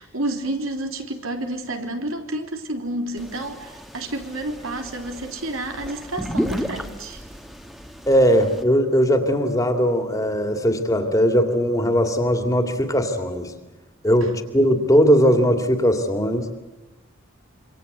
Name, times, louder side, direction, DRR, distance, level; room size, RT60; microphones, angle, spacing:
voice 1, 0.0-7.2 14.2-14.3, right 1 dB, 90° right, 4 dB, 3.4 m, -30 dB
sound 1, 3.2-8.6, equal, ahead, 1.6 m, -33 dB
voice 2, 8.1-13.5 14.0-16.5, equal, 15° left, 6 dB, 2.5 m, -19 dB
27.0 x 25.5 x 8.1 m, 1.0 s
head